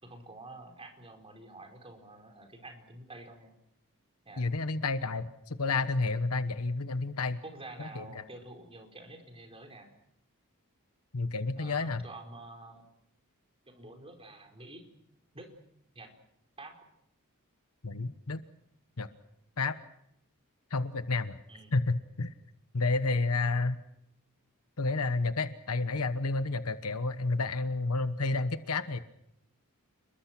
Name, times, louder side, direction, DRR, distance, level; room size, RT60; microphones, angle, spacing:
voice 1, 0.0-3.5 4.2-4.5 7.4-9.9 11.6-12.8 13.7-14.9 15.3-15.5 15.9-16.1 16.6-16.7 21.5-21.7, right 2 dB, 25° right, 3 dB, 4.6 m, -48 dB
voice 2, 4.4-7.4 7.8-8.2 11.1-12.0 17.8-18.4 19.0-19.1 19.6-19.7 20.7-21.4 21.7-22.3 22.7-23.8 24.8-29.0, left 3 dB, 75° left, 12 dB, 1.2 m, -30 dB
29.0 x 22.0 x 6.1 m, 0.74 s
head